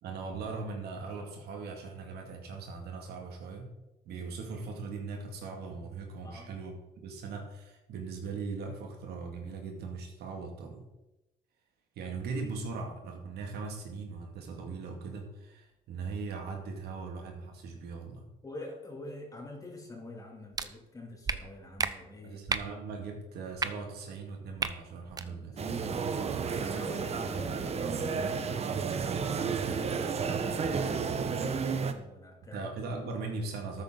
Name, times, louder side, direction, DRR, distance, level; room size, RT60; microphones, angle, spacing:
voice 1, 0.0-3.7 4.0-10.9 12.0-18.3 22.2-25.6 32.5-33.8, right 4 dB, 70° right, 3 dB, 2.3 m, -39 dB
voice 2, 18.4-22.4 25.2-28.7 29.2-32.7, left 2 dB, 20° left, 0 dB, 3.0 m, -46 dB
sound 1, 20.5-20.7 21.3-21.4 21.8-21.9 22.5-22.7 23.6-23.7 24.6-24.7 25.1-25.3, right 4 dB, 20° right, 0.7 m, -30 dB
sound 2, 25.6-31.9, right 5 dB, 40° right, 1.0 m, -32 dB
13.0 x 9.2 x 3.9 m, 0.98 s
cardioid pair, 110°, 17 cm